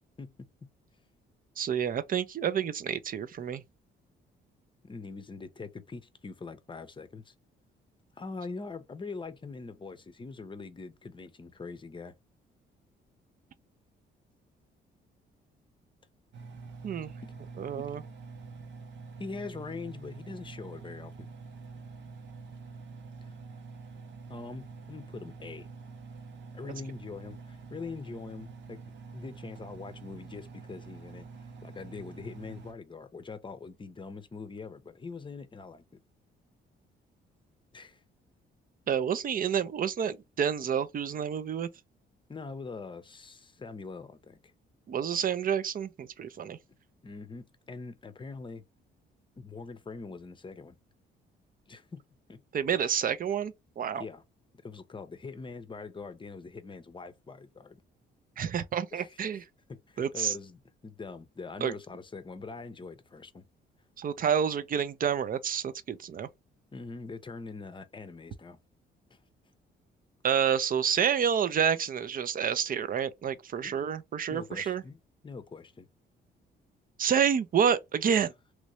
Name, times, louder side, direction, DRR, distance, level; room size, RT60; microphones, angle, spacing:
voice 1, 1.6-3.6 16.8-17.1 17.6-18.0 38.9-41.7 44.9-46.6 52.5-54.0 58.4-59.4 60.0-60.3 61.6-61.7 64.0-66.3 70.2-74.8 77.0-78.3, right 8 dB, 45° right, 0.6 m, -29 dB
voice 2, 4.8-7.3 8.2-12.1 17.3-17.4 17.8-17.9 19.2-21.3 24.3-25.7 26.5-28.8 29.1-31.3 31.6-35.8 37.7-38.0 42.3-44.4 47.0-48.6 49.4-50.8 51.7-52.0 52.3-52.4 54.0-54.2 54.6-57.8 58.9-59.2 59.7-63.4 66.7-68.6 69.1-69.2 73.6-73.7 74.3-75.0 75.2-75.9, left 4 dB, 25° left, 0.7 m, -43 dB
Engine, 16.3-32.7, right 4 dB, 65° right, 0.9 m, -46 dB
3.1 x 2.6 x 3.1 m
cardioid pair, 90°, 20 cm